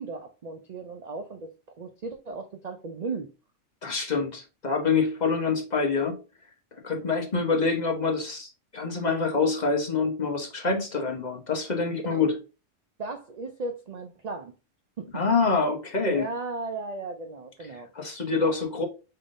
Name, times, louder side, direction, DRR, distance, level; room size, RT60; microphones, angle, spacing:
voice 1, 0.0-3.3 12.1-12.3 13.0-14.5 15.0-15.2 16.1-17.9, right 3 dB, 65° right, 0.4 m, -36 dB
voice 2, 3.8-6.2 6.8-12.4 15.1-16.3 17.9-18.8, left 4 dB, 35° left, 1.0 m, -26 dB
5.5 x 3.5 x 2.6 m
omnidirectional pair, 1.3 m